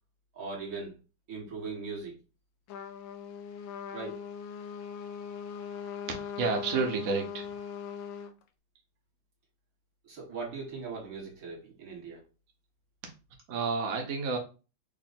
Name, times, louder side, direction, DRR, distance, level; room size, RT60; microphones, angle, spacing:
voice 1, 0.3-0.9 1.3-2.2 3.9-4.2 10.0-12.2, right 4 dB, 50° right, -2 dB, 1.7 m, -39 dB
Trumpet, 2.7-8.3, left 7 dB, 75° left, 1.2 m, -40 dB
voice 2, 6.1-7.5 13.0-13.1 13.5-14.4, right 4 dB, 75° right, 3 dB, 0.7 m, -30 dB
3.8 x 2.1 x 4.0 m, 0.32 s
omnidirectional pair, 2.2 m